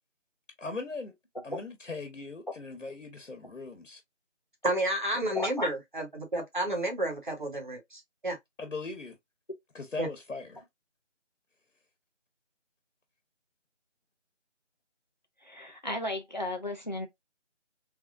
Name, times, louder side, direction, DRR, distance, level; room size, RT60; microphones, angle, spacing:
voice 1, 0.6-1.1 1.4-4.0 8.6-9.2 9.7-10.6, left 3 dB, 90° left, 1.0 m, -39 dB
voice 2, 4.6-8.4 10.0-10.1, right 1 dB, 40° right, 0.8 m, -31 dB
voice 3, 5.3-5.7 15.4-17.1, left 1 dB, 40° left, 0.5 m, -34 dB
3.3 x 2.4 x 2.3 m
figure-of-eight pair, 175°, 36 cm